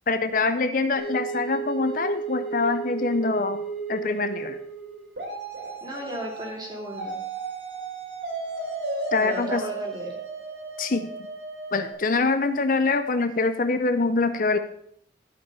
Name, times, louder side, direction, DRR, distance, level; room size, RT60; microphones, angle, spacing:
voice 1, 0.1-3.6 3.9-4.6 9.1-9.6 10.8-11.1 11.7-14.6, left 3 dB, 50° left, 10 dB, 0.6 m, -24 dB
sound 1, 1.0-11.9, right 4 dB, 75° right, 4.5 m, -34 dB
voice 2, 5.8-7.2 9.2-10.2, right 1 dB, 25° right, -1 dB, 2.9 m, -35 dB
12.5 x 5.6 x 6.9 m, 0.68 s
head